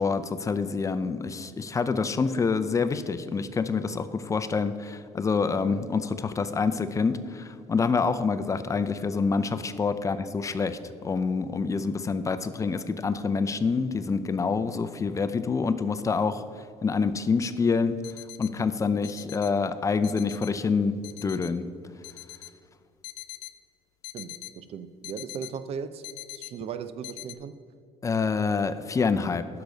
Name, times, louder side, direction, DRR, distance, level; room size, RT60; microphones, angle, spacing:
voice 1, 0.0-16.4 16.8-18.0 18.4-21.6 28.0-29.5, left 5 dB, 25° left, 12 dB, 0.5 m, -27 dB
sound 1, 17.4-17.5 18.0-18.5 19.0-19.5 20.0-20.5 21.0-21.5 22.0-22.5 23.0-23.5 24.0-24.5 25.0-25.5 26.0-26.5 27.0-27.3, left 18 dB, 85° left, 0.5 m, -42 dB
voice 2, 24.1-26.0 26.3-27.6, right 7 dB, 55° right, 13 dB, 0.6 m, -37 dB
10.5 x 6.7 x 5.2 m, 2.3 s
cardioid pair, 100°, 12 cm